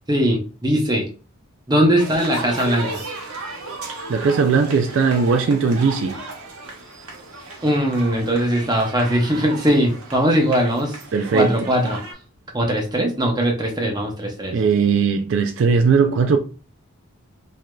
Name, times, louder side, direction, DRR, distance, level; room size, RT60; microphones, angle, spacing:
voice 1, 0.1-1.1 1.7-3.0 7.6-10.9 11.3-12.0 12.5-14.6, equal, 20° right, 0.7 m, -20 dB
sound 1, 2.0-12.1, right 2 dB, 80° right, 1.1 m, -35 dB
voice 2, 4.1-6.2 11.1-11.6 14.5-16.4, right 5 dB, 60° right, 0.3 m, -18 dB
4.7 x 2.7 x 2.2 m
head